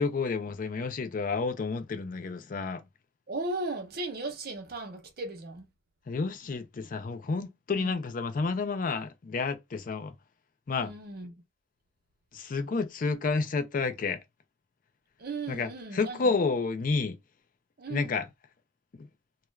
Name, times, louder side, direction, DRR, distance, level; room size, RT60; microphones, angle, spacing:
voice 1, 0.0-2.8 6.1-10.1 10.7-10.9 12.3-14.2 15.5-17.1 17.9-18.3, left 4 dB, 50° left, 0.4 m, -30 dB
voice 2, 3.3-5.7 7.7-7.9 10.8-11.4 15.2-16.4 17.8-18.2, right 2 dB, 60° right, 0.7 m, -37 dB
2.3 x 2.2 x 3.1 m
head